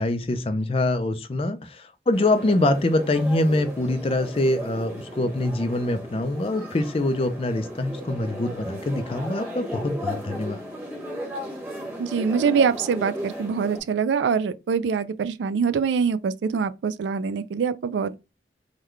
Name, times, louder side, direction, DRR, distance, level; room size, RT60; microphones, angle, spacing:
voice 1, 0.0-10.6, left 2 dB, 30° left, 0.4 m, -24 dB
sound 1, 2.1-13.8, equal, 10° right, 1.0 m, -36 dB
voice 2, 12.0-18.2, right 6 dB, 80° right, 0.3 m, -24 dB
3.7 x 2.2 x 3.1 m
head